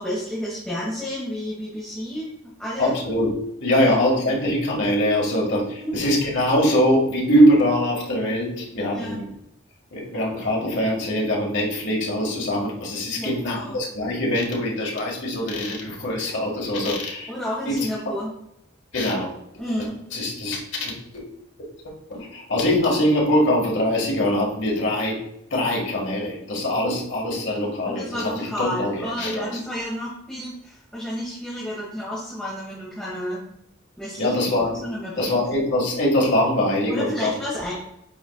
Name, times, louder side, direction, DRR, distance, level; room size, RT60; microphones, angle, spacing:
voice 1, 0.0-3.0 3.8-4.0 5.8-6.0 8.9-9.2 13.1-13.8 17.3-18.3 19.6-20.0 27.9-33.4 34.0-34.3 34.6-35.4 36.9-37.7, equal, 5° left, -8 dB, 1.6 m, -31 dB
voice 2, 2.8-3.4 3.6-9.2 9.9-17.3 17.7-17.9 18.9-19.3 20.1-21.2 21.8-25.2 25.5-29.6 34.2-34.8 35.2-37.3, equal, 60° left, -2 dB, 1.9 m, -23 dB
8.6 x 4.7 x 2.4 m, 0.77 s
head